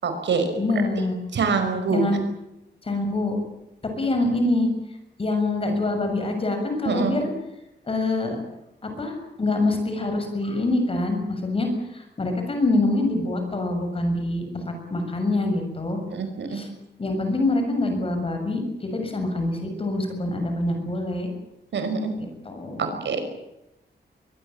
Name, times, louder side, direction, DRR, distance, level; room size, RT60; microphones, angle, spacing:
voice 1, 0.0-0.5 1.3-2.0 6.9-7.1 16.1-16.6 21.7-22.1 23.0-23.2, right 5 dB, 85° right, 7 dB, 5.7 m, -24 dB
voice 2, 0.6-1.2 1.9-2.2 2.8-3.4 4.0-4.7 5.2-7.3 7.9-8.4 8.8-16.0 16.5-16.7 17.0-21.3 22.2-23.0, left 2 dB, 30° left, 5 dB, 6.9 m, -25 dB
23.0 x 21.0 x 8.8 m, 0.89 s
wide cardioid pair, 175°, 18 cm